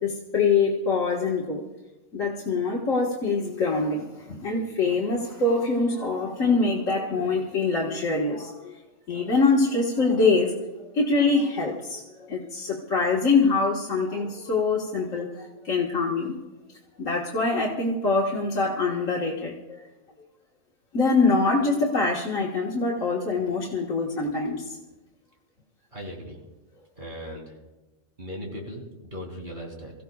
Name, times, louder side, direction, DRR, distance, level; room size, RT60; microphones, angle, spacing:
voice 1, 0.0-1.6 2.1-8.8 9.1-10.6 10.9-16.4 17.0-19.9 20.9-24.8, left 3 dB, 75° left, -3 dB, 1.9 m, -24 dB
voice 2, 25.9-26.4 26.9-27.5 28.2-29.9, equal, 40° right, -1 dB, 3.3 m, -38 dB
27.5 x 15.5 x 2.3 m, 1.1 s
omnidirectional pair, 1.3 m